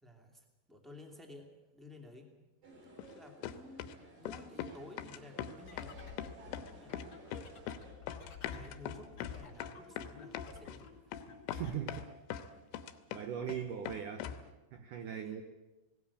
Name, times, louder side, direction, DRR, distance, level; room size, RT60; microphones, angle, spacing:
voice 1, 0.0-2.3 3.1-6.1 6.7-7.1 8.5-11.3 15.1-15.4, left 2 dB, ahead, 2 dB, 1.0 m, -54 dB
sound 1, 2.6-7.9, right 1 dB, 50° right, 5.6 m, -56 dB
sound 2, 3.0-3.1 3.4-4.0 4.3-4.7 5.0-5.9 6.2-6.7 6.9-7.8 8.1-10.8 11.1-11.2 11.5-12.5 12.7-13.6 13.9-14.4, left 9 dB, 90° left, 3.3 m, -41 dB
sound 3, 5.6-11.8, left 8 dB, 65° left, 1.1 m, -53 dB
voice 2, 11.5-12.1 12.7-12.8 13.1-14.3 14.7-15.4, right 8 dB, 80° right, 7 dB, 1.8 m, -40 dB
18.5 x 18.0 x 8.6 m, 1.1 s
omnidirectional pair, 5.2 m